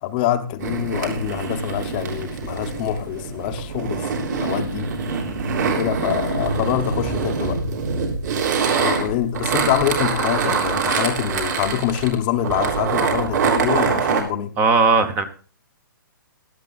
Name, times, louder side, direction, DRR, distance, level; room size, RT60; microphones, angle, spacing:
voice 1, 0.0-4.9 5.6-7.6 8.6-14.5, left 11 dB, 25° left, 8 dB, 0.7 m, -25 dB
sound 1, 0.6-14.2, right 5 dB, 55° right, 3.3 m, -24 dB
sound 2, 2.0-7.5, right 2 dB, 75° right, 7.6 m, -42 dB
voice 2, 14.6-15.2, right 4 dB, 15° right, 12 dB, 0.8 m, -17 dB
16.5 x 11.5 x 2.4 m, 0.39 s
hypercardioid pair, 165°, 12 cm